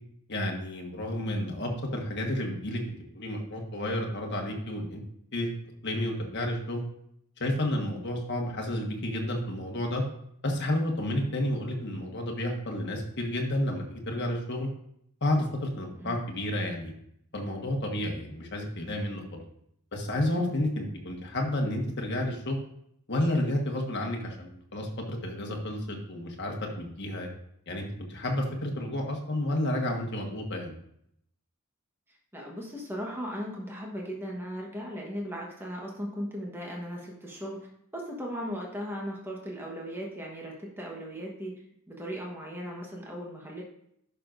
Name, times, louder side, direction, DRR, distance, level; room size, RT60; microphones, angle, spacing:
voice 1, 0.3-5.0 5.3-5.5 5.8-6.8 7.4-10.0 10.4-14.7 15.2-16.9 17.3-19.4 19.9-22.6 23.1-27.3 27.7-30.7, left 1 dB, 50° left, 1 dB, 1.5 m, -31 dB
voice 2, 32.3-37.7 37.9-41.5 41.9-43.6, equal, 10° right, -2 dB, 1.2 m, -37 dB
11.0 x 6.0 x 2.6 m, 0.72 s
head